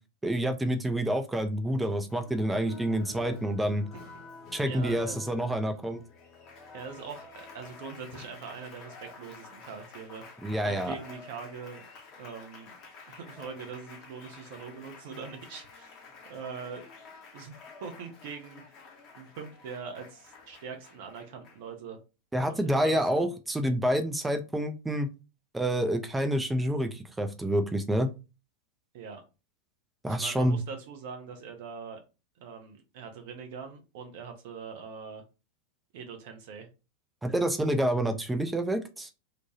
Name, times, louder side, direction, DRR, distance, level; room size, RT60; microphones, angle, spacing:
voice 1, 0.2-3.9 4.5-6.0 10.4-11.0 22.3-25.1 25.5-28.1 30.0-30.6 37.2-39.1, right 1 dB, 10° right, 7 dB, 0.4 m, -28 dB
Applause, 2.1-21.8, left 4 dB, 35° left, 0.7 m, -49 dB
voice 2, 4.6-5.2 6.7-10.2 10.6-11.9 12.2-12.8 13.1-16.0 16.3-16.9 17.3-17.5 17.8-18.8 19.2-22.0 22.5-23.3 28.9-29.2 30.1-32.0 32.4-35.2 35.9-36.7, right 5 dB, 50° right, 5 dB, 0.6 m, -42 dB
3.0 x 2.2 x 2.7 m, 0.29 s
figure-of-eight pair, 90°, 0 cm